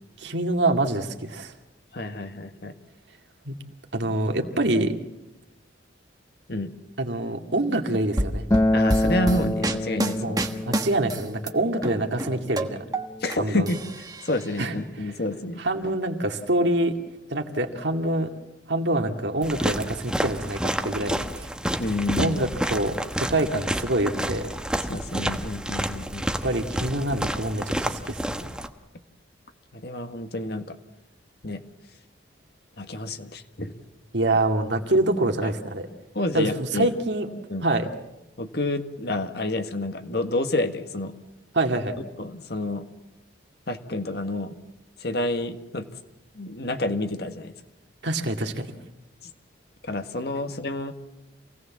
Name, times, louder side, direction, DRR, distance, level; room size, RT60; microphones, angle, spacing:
voice 1, 0.2-1.5 3.5-3.6 3.9-4.9 7.0-8.5 10.2-12.8 13.4-13.7 14.6-15.1 15.6-17.0 17.3-18.3 18.7-21.5 22.2-24.5 26.4-28.4 34.1-35.9 36.3-37.3 37.6-37.9 41.5-41.9 48.0-48.7, right 1 dB, 70° right, 4 dB, 2.2 m, -26 dB
voice 2, 1.9-2.7 6.5-6.7 8.7-10.4 13.2-13.8 14.2-15.6 21.8-22.4 24.9-26.3 29.7-30.7 31.4-31.6 32.8-33.7 35.4-35.5 36.1-36.9 37.5-37.7 38.4-41.1 42.2-42.8 43.7-44.6 45.0-45.9 46.3-47.5 49.9-50.9, left 1 dB, 55° left, 7 dB, 1.7 m, -29 dB
sound 1, 8.2-11.5 11.8-13.4 13.7-14.5, right 1 dB, 20° right, 1.4 m, -28 dB
Acoustic guitar, 8.5-13.7, left 1 dB, 15° left, 0.7 m, -27 dB
sound 2, 19.4-28.7, equal, 5° right, 1.1 m, -29 dB
27.5 x 17.5 x 7.4 m, 0.98 s
head